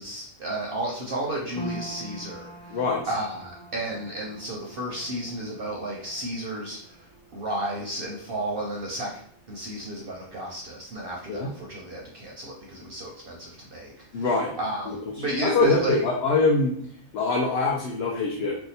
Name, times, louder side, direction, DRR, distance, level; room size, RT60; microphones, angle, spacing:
voice 1, 0.0-2.8 3.1-7.1 7.3-9.1 9.5-16.0, right 1 dB, 55° right, -3 dB, 0.7 m, -33 dB
sound 1, 1.6-14.0 14.2-15.2 15.6-15.7, right 2 dB, 5° left, 0.5 m, -46 dB
voice 2, 2.7-3.1 11.3-11.5 14.1-14.5 14.9-15.0 15.4-16.7 17.1-18.5, left 3 dB, 65° left, -2 dB, 0.7 m, -23 dB
2.6 x 2.2 x 4.0 m, 0.63 s
omnidirectional pair, 1.3 m